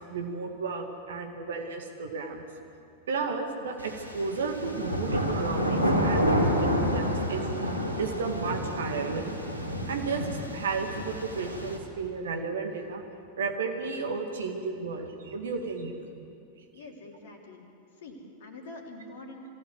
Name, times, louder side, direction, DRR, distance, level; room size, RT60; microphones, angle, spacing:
voice 1, 0.1-2.4 3.1-7.5 8.0-9.4 9.9-13.0 13.4-15.9, right 4 dB, 65° right, 4 dB, 2.2 m, -33 dB
sound 1, 3.8-11.8, equal, 85° left, 2.4 m, -29 dB
voice 2, 16.7-17.6 18.0-19.5, left 2 dB, 55° left, 1 dB, 3.2 m, -45 dB
22.5 x 15.5 x 8.0 m, 2.6 s
figure-of-eight pair, 90°, 0 cm